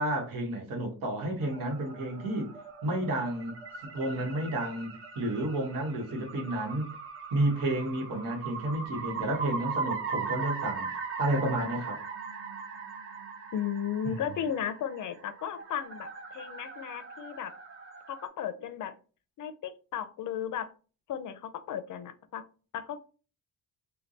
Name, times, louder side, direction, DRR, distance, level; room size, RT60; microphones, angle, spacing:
voice 1, 0.0-2.5 2.8-3.6 3.8-6.9 7.3-10.9 11.2-12.0 14.0-14.2, right 1 dB, 65° right, 1.3 m, -31 dB
sound 1, 1.4-18.3, right 5 dB, 35° right, 0.8 m, -40 dB
voice 2, 13.5-17.5 18.1-18.9 19.4-20.7 21.1-22.4 22.7-23.0, left 8 dB, 60° left, 0.5 m, -35 dB
3.3 x 2.2 x 3.9 m
cardioid pair, 135°, 36 cm